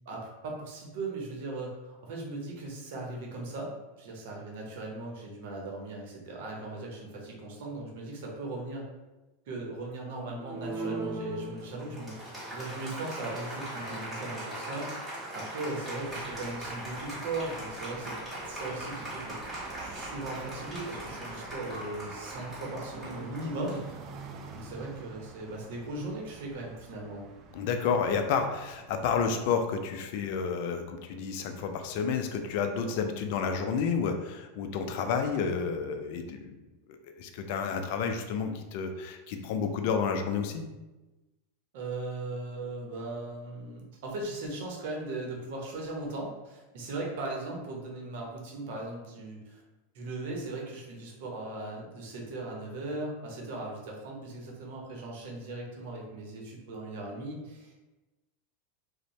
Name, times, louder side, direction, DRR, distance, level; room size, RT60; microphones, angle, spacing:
voice 1, 0.1-3.7 4.0-8.8 9.5-18.2 18.5-23.8 24.5-27.3 41.7-49.6 49.9-57.8, right 2 dB, 65° right, -1 dB, 0.7 m, -38 dB
Applause, 10.4-24.4, right 1 dB, 5° right, 1.3 m, -39 dB
sound 1, 15.8-29.1, right 4 dB, 40° right, 0.3 m, -48 dB
voice 2, 27.5-36.6 36.9-40.6, left 6 dB, 60° left, 6 dB, 0.3 m, -30 dB
2.5 x 2.0 x 3.0 m, 1.1 s
hypercardioid pair, 110°, 0 cm